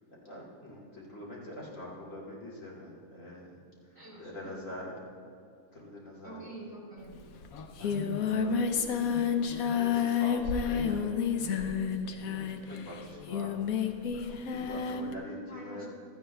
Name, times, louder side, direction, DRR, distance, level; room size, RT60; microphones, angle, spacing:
voice 1, 0.2-3.6 4.2-5.0 5.7-6.4 7.8-9.1 9.5-11.4 11.9-13.9 14.5-15.8, left 1 dB, 65° left, -6 dB, 2.9 m, -45 dB
voice 2, 3.9-4.7 6.2-7.2 15.5-15.8, right 1 dB, 20° left, -7 dB, 3.1 m, -46 dB
Singing, 7.1-7.2 7.4-15.1, left 7 dB, 90° left, 1.2 m, -30 dB
16.0 x 13.0 x 2.3 m, 2.4 s
omnidirectional pair, 1.5 m